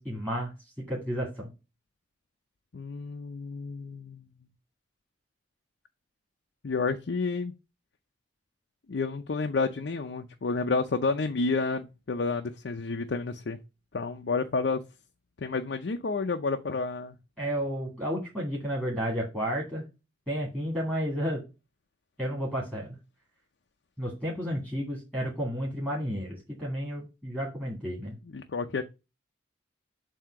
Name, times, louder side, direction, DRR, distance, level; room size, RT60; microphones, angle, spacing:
voice 1, 0.0-1.5 17.4-19.9 20.3-21.4 22.2-23.0 24.0-28.2, equal, 5° right, 2.1 m, -32 dB
voice 2, 2.7-4.3 6.6-7.5 8.9-13.6 13.9-14.8 15.4-17.1 28.3-28.8, left 4 dB, 60° left, 0.5 m, -30 dB
7.4 x 2.8 x 5.7 m
head